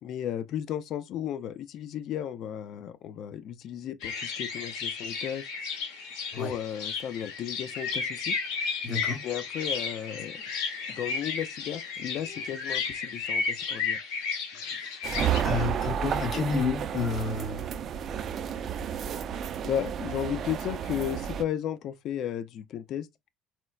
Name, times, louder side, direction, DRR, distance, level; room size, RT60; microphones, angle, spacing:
voice 1, 0.0-5.5 6.3-8.4 9.2-10.4 10.9-14.0 19.6-23.1, left 10 dB, 60° left, 0.4 m, -34 dB
sound 1, 4.0-15.4, left 5 dB, 85° left, 1.1 m, -33 dB
voice 2, 8.8-9.2 14.6-14.9 15.4-17.7, left 4 dB, 45° left, 0.8 m, -30 dB
sound 2, 15.0-21.4, right 8 dB, 50° right, 0.4 m, -31 dB
4.3 x 2.0 x 2.3 m
cardioid pair, 105°, 0 cm